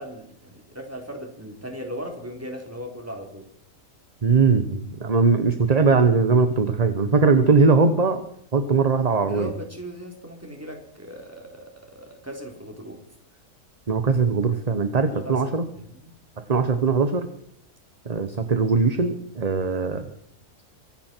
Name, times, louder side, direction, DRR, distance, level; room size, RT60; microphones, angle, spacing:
voice 1, 0.0-3.5 5.2-5.3 9.3-13.0 15.0-16.1, equal, 10° right, 2 dB, 3.7 m, -38 dB
voice 2, 4.2-8.2 8.5-9.5 13.9-15.6 16.4-17.3 18.0-20.1, right 4 dB, 30° right, 9 dB, 1.1 m, -20 dB
24.5 x 11.5 x 4.5 m, 0.68 s
omnidirectional pair, 1.6 m